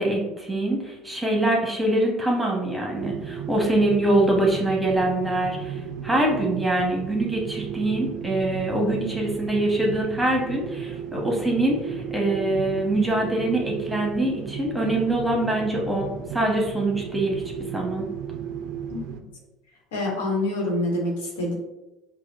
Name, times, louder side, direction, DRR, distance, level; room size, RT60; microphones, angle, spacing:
voice 1, 0.0-18.0, right 1 dB, 10° right, 0 dB, 1.0 m, -24 dB
sound 1, 3.0-19.2, right 8 dB, 65° right, 0.3 m, -34 dB
voice 2, 19.9-21.5, left 1 dB, 90° left, -2 dB, 0.9 m, -26 dB
4.8 x 2.0 x 2.5 m, 1.0 s
supercardioid pair, 80°, 0 cm